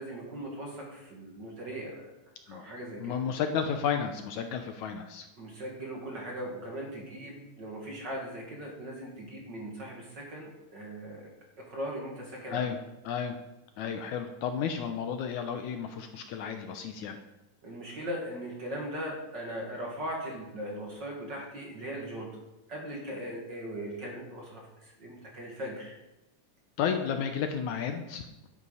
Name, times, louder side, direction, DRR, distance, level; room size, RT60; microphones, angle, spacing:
voice 1, 0.0-2.1 2.5-3.2 5.4-11.3 11.6-12.7 17.6-22.3 22.7-25.9, right 1 dB, 40° right, -2 dB, 2.2 m, -39 dB
voice 2, 3.0-5.3 12.5-12.8 13.0-13.4 13.8-17.2 26.8-28.5, left 7 dB, 75° left, 6 dB, 2.0 m, -32 dB
11.0 x 7.9 x 5.6 m, 0.96 s
omnidirectional pair, 3.8 m